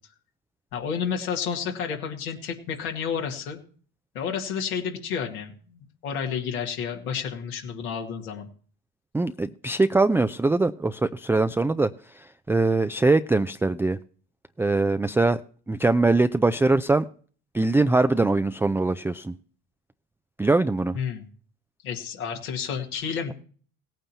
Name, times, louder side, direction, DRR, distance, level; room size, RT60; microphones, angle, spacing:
voice 1, 0.7-3.6 4.1-8.5 20.9-21.3 21.8-23.3, left 7 dB, 80° left, 1 dB, 2.0 m, -31 dB
voice 2, 9.1-11.9 12.2-14.0 14.6-15.4 15.7-17.1 17.5-19.4 20.4-21.0, right 3 dB, 5° right, 9 dB, 0.4 m, -22 dB
18.5 x 9.1 x 2.8 m, 0.43 s
hypercardioid pair, 60°, 43 cm